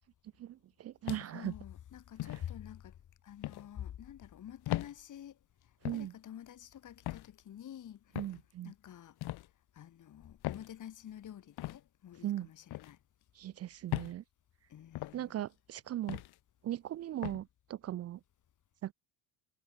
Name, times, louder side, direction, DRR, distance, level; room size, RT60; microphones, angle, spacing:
voice 1, 0.4-1.5 5.8-6.1 8.2-8.7 12.2-12.5 13.4-14.2 15.1-16.2 16.6-18.2 18.8-18.9, right 13 dB, 35° right, 0.4 m, -38 dB
sound 1, 1.1-1.5 2.2-2.5 3.4-3.7 4.7-4.9 5.8-6.1 7.1-7.3 8.1-8.4 9.2-9.5 10.4-10.7 11.6-11.8 12.7-12.9 13.9-14.2 14.9-15.2 16.1-16.3 17.2-17.4, left 16 dB, 60° left, 1.0 m, -38 dB
voice 2, 1.3-3.0 3.2-5.4 5.9-8.0 8.6-9.2 9.7-13.0 14.7-15.5, left 10 dB, 40° left, 1.8 m, -48 dB
cardioid pair, 130°, 45 cm